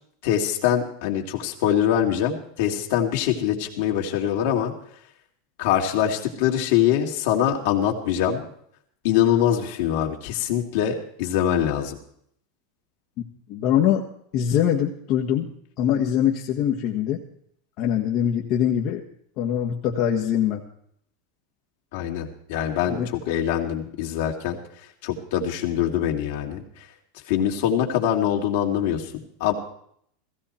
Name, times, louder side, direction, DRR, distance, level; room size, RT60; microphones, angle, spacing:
voice 1, 0.2-4.7 5.6-8.4 9.0-12.0 21.9-26.9 27.3-29.5, left 10 dB, 70° left, 2 dB, 2.6 m, -24 dB
voice 2, 13.5-14.0 14.3-17.2 17.8-19.0 19.4-20.6 22.9-23.1, left 10 dB, 55° left, -1 dB, 1.6 m, -23 dB
16.5 x 16.0 x 4.4 m, 0.67 s
supercardioid pair, 115°, 0 cm